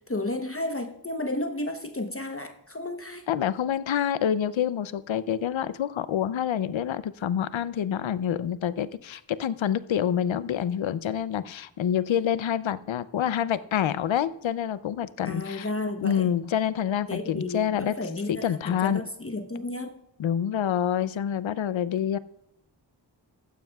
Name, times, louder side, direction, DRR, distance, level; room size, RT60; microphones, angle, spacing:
voice 1, 0.1-3.2 15.2-16.3 17.1-20.0, left 2 dB, 30° left, 5 dB, 0.9 m, -32 dB
voice 2, 3.3-15.7 16.0-17.9 18.3-19.0 20.2-22.2, left 9 dB, 85° left, 16 dB, 0.6 m, -27 dB
15.0 x 12.0 x 2.3 m, 0.82 s
cardioid pair, 45°, 45 cm